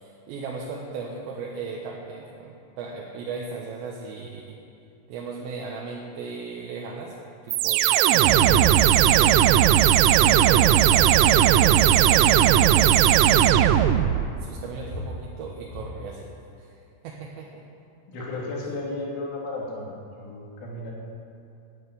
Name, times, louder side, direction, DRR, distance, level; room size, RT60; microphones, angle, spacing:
voice 1, 0.0-4.6 5.1-7.2 7.4-9.5 10.2-13.5 14.3-16.3 16.6-17.6, right 4 dB, 70° right, -2 dB, 3.0 m, -36 dB
sound 1, 7.5-14.3, right 11 dB, 90° right, 3.3 m, -17 dB
sound 2, 8.4-8.6 8.9-9.4 9.8-9.9 10.2-11.1 11.8-12.0 12.2-12.3 12.5-14.2 14.5-15.9, left 2 dB, 35° left, 2.3 m, -37 dB
voice 2, 18.1-20.9, left 2 dB, 70° left, -4 dB, 5.0 m, -34 dB
12.0 x 9.6 x 9.4 m, 2.6 s
omnidirectional pair, 6.0 m